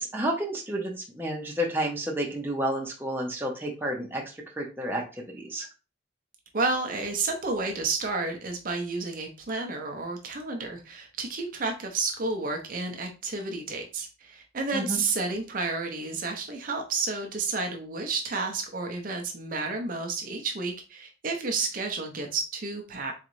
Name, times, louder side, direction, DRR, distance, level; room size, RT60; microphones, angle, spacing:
voice 1, 0.0-4.2 4.6-5.0 5.3-5.7 14.7-15.0, right 1 dB, 10° right, -1 dB, 0.8 m, -30 dB
voice 2, 6.5-23.1, right 3 dB, 50° right, 3 dB, 0.6 m, -31 dB
3.8 x 3.1 x 3.1 m, 0.32 s
head